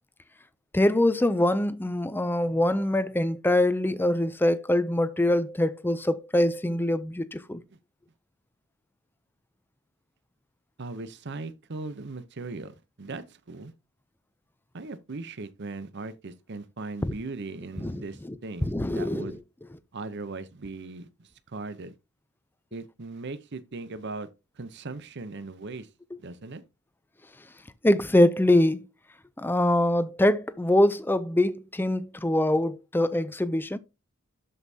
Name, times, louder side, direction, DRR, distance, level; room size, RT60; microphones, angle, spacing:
voice 1, 0.7-7.6 17.0-17.1 17.8-18.0 18.6-19.3 27.8-28.8 29.4-33.8, left 1 dB, 10° left, 0.4 m, -24 dB
voice 2, 10.8-13.7 14.7-19.4 19.9-21.9 22.7-24.3 24.5-25.9 26.2-26.6, right 3 dB, 50° right, 0.7 m, -39 dB
12.5 x 5.5 x 2.8 m
head